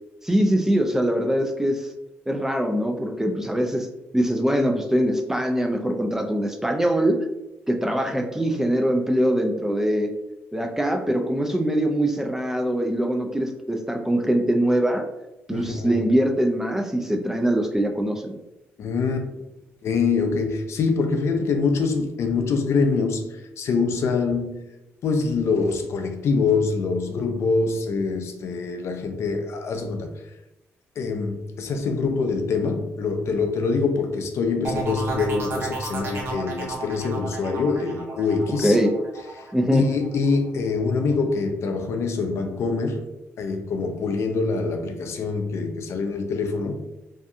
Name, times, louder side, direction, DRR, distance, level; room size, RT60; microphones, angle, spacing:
voice 1, 0.2-1.9 2.3-3.9 4.1-7.1 7.7-10.1 10.5-15.0 15.5-18.4 38.6-38.9 39.5-39.8, right 1 dB, 10° right, 0.4 m, -22 dB
voice 2, 15.5-16.0 18.8-19.3 19.8-24.7 25.0-30.1 31.0-38.8 39.4-43.0 43.4-46.8, left 4 dB, 65° left, 0.4 m, -25 dB
sound 1, 34.6-40.3 40.7-41.1, right 3 dB, 50° right, 0.8 m, -33 dB
2.7 x 2.2 x 2.5 m
cardioid pair, 80°, 5 cm